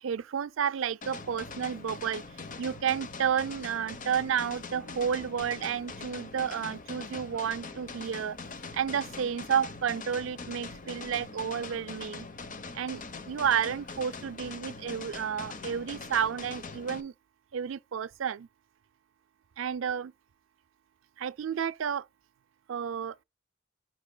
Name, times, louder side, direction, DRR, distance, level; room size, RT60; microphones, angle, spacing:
voice 1, 0.0-2.2 2.6-8.4 8.7-12.3 12.7-17.1 17.5-18.5 19.6-20.1 21.2-22.1 22.7-23.1, right 8 dB, 75° right, 0.4 m, -31 dB
sound 1, 1.0-17.0, left 4 dB, 40° left, 0.9 m, -42 dB
9.8 x 4.5 x 2.2 m
head